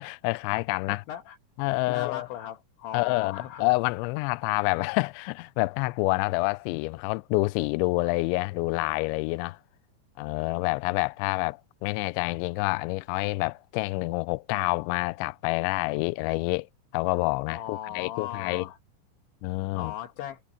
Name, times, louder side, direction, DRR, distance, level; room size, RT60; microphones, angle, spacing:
voice 1, 0.0-1.0 1.6-2.3 2.9-9.6 10.2-16.7 16.9-18.6 19.4-19.9, left 24 dB, 85° left, 2.6 m, -28 dB
voice 2, 0.9-1.4 1.9-3.7 17.5-18.8 19.7-20.4, left 11 dB, 70° left, 3.5 m, -37 dB
omnidirectional pair, 5.8 m